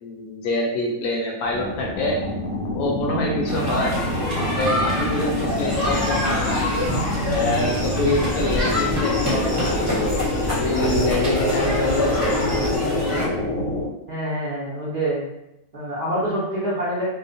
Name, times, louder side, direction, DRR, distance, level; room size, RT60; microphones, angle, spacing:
voice 1, 0.0-2.2 2.7-3.9 4.6-6.6 7.3-10.2 10.6-12.4, left 2 dB, 70° left, -2 dB, 1.0 m, -26 dB
sound 1, 1.4-13.9, left 1 dB, 90° left, 1.2 m, -26 dB
sound 2, 3.5-13.3, left 1 dB, 15° right, 1.0 m, -27 dB
sound 3, 5.5-12.8, equal, 35° left, 0.4 m, -32 dB
voice 2, 14.1-15.3 15.7-17.1, right 1 dB, 60° right, -9 dB, 0.5 m, -26 dB
2.7 x 2.0 x 2.6 m, 0.88 s
omnidirectional pair, 1.7 m